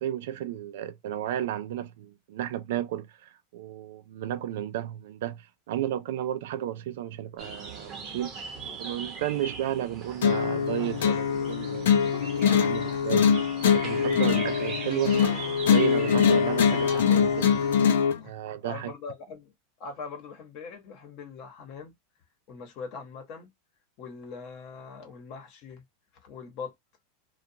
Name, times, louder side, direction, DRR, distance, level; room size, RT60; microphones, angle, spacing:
voice 1, 0.0-8.3 8.7-13.2 13.7-17.5 18.2-18.9, right 11 dB, 70° right, 0.4 m, -33 dB
sound 1, 7.4-17.9, right 4 dB, 30° right, 0.8 m, -40 dB
voice 2, 8.5-8.9 18.1-18.4 18.6-19.5 19.8-21.9 22.5-23.5 24.0-25.8 26.2-26.7, left 5 dB, 45° left, 1.0 m, -42 dB
sound 2, 10.2-18.2, left 7 dB, 85° left, 0.5 m, -23 dB
2.5 x 2.3 x 2.7 m
supercardioid pair, 140°, 0 cm